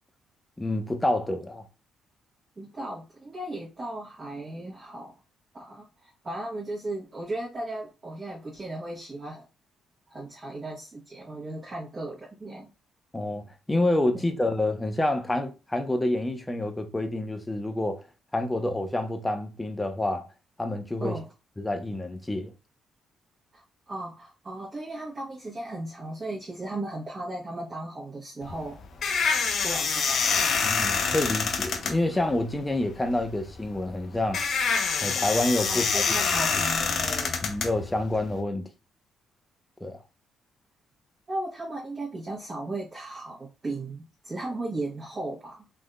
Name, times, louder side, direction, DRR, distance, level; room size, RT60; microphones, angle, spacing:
voice 1, 0.6-1.6 13.1-18.0 18.3-20.3 20.6-21.1 21.6-22.5 30.6-34.4 35.0-36.0 36.3-36.4 37.4-38.7 39.8-40.0, left 1 dB, 10° left, 0.6 m, -28 dB
voice 2, 2.6-5.2 5.5-9.4 10.1-12.7 14.1-14.2 21.0-21.3 23.5-28.8 29.6-30.5 35.7-37.5 41.3-45.7, right 2 dB, 30° right, 1.0 m, -36 dB
sound 1, 28.4-38.4, left 5 dB, 65° left, 0.6 m, -27 dB
3.5 x 2.6 x 2.2 m
cardioid pair, 90°, 0 cm